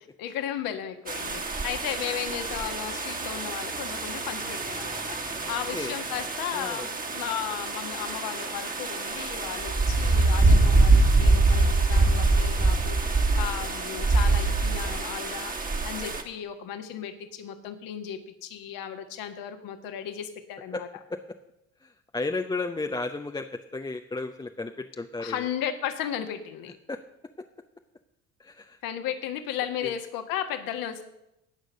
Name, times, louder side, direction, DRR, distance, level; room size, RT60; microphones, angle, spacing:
voice 1, 0.2-20.9 25.2-26.8 28.8-31.0, left 9 dB, 55° left, 7 dB, 1.6 m, -35 dB
sound 1, 1.1-16.2, right 3 dB, 20° right, 1.7 m, -25 dB
voice 2, 5.4-5.9 6.5-6.9 10.6-10.7 13.3-13.5 20.7-20.8 21.1-21.2 21.8-23.5 23.7-25.5 26.9-27.0 28.4-28.8 29.8-29.9, left 3 dB, 10° left, 5 dB, 0.7 m, -34 dB
17.0 x 6.4 x 6.4 m, 0.87 s
figure-of-eight pair, 60°, 41 cm